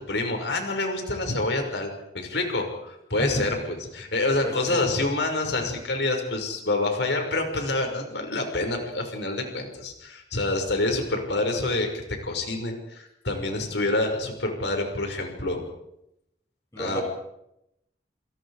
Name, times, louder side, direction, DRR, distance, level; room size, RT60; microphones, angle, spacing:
voice 1, 0.1-1.9 2.1-15.6 16.8-17.0, left 2 dB, 75° left, 3 dB, 6.2 m, -27 dB
voice 2, 4.4-4.8 16.7-17.0, equal, 15° left, 0 dB, 7.8 m, -32 dB
29.0 x 28.5 x 5.1 m, 0.82 s
head